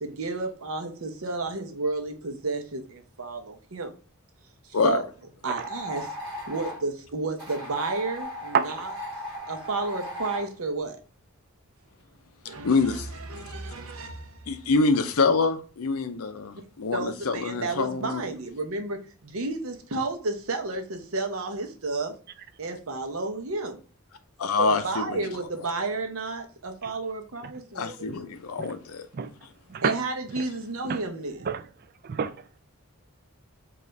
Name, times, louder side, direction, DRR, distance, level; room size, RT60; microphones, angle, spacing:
voice 1, 0.0-3.9 4.6-5.0 5.4-6.1 6.5-8.9 9.5-11.0 12.5-14.5 16.9-22.2 22.6-23.8 24.6-28.1 29.8-31.4, right 3 dB, 70° right, 0.8 m, -32 dB
sound 1, 5.5-6.8 7.4-10.5, left 1 dB, 20° right, 2.1 m, -37 dB
voice 2, 12.6-13.1 14.5-18.2 24.4-25.3 27.7-29.1, left 4 dB, 80° left, 0.6 m, -25 dB
voice 3, 32.0-32.5, right 6 dB, 45° right, 0.3 m, -29 dB
4.8 x 2.5 x 3.2 m
head